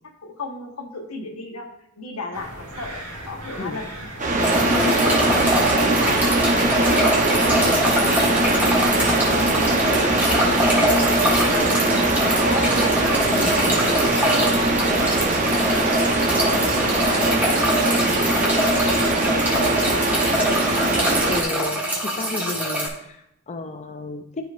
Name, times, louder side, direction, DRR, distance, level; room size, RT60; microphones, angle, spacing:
voice 1, 0.2-1.7 2.0-4.1 4.7-6.4 6.8-10.6 12.0-12.9 13.3-15.0 16.0-18.0, left 3 dB, 85° left, 3 dB, 1.3 m, -35 dB
sound 1, 2.3-17.2, right 1 dB, 65° right, 2.5 m, -38 dB
sound 2, 4.2-21.4, right 2 dB, 35° right, 0.9 m, -21 dB
sound 3, 4.4-22.9, equal, 5° right, 1.5 m, -24 dB
voice 2, 21.3-24.5, left 3 dB, 30° left, 5 dB, 0.4 m, -33 dB
12.5 x 4.9 x 2.5 m, 0.80 s
head